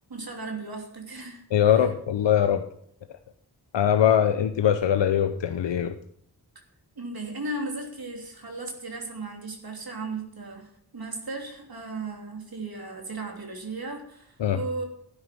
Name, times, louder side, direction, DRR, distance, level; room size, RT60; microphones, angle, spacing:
voice 1, 0.1-1.9 7.0-14.8, right 3 dB, 55° right, 2 dB, 3.2 m, -36 dB
voice 2, 1.5-2.6 3.7-5.9 14.4-14.6, left 9 dB, 85° left, 8 dB, 0.8 m, -22 dB
12.0 x 9.6 x 6.1 m, 0.67 s
cardioid pair, 50°, 42 cm